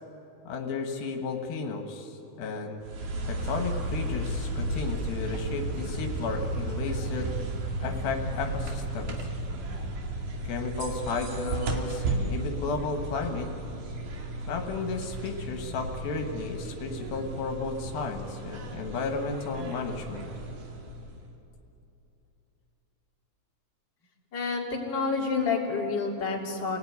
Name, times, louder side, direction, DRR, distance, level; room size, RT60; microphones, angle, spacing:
voice 1, 0.5-2.8 3.3-7.3 7.8-9.2 10.4-13.5 14.5-20.3, left 4 dB, 80° left, 4 dB, 3.4 m, -33 dB
sound 1, 2.8-21.3, right 1 dB, 65° right, 3.9 m, -34 dB
voice 2, 24.3-26.8, left 4 dB, 30° left, -2 dB, 3.7 m, -29 dB
28.0 x 18.5 x 9.6 m, 2.9 s
omnidirectional pair, 4.2 m